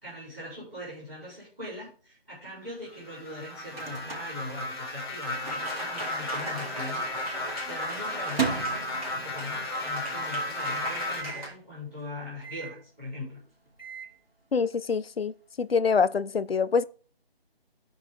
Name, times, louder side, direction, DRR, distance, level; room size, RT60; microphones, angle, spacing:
voice 1, 0.0-7.1 7.7-8.7 9.1-13.4, left 1 dB, 10° right, 5.3 m, -41 dB
sound 1, 2.9-11.2, left 1 dB, 25° left, 1.5 m, -34 dB
Microwave oven, 3.2-5.3 5.6-5.7 5.9-6.5 7.0-9.7 10.1-10.2 10.4-10.5 11.1-11.5 12.4-12.9 13.5-14.2, right 5 dB, 65° right, 3.3 m, -36 dB
Applause, 5.4-11.5, right 1 dB, 35° right, 3.3 m, -39 dB
voice 2, 14.5-15.3 15.6-16.8, left 5 dB, 70° left, 0.7 m, -25 dB
14.5 x 4.9 x 3.9 m
figure-of-eight pair, 170°, 31 cm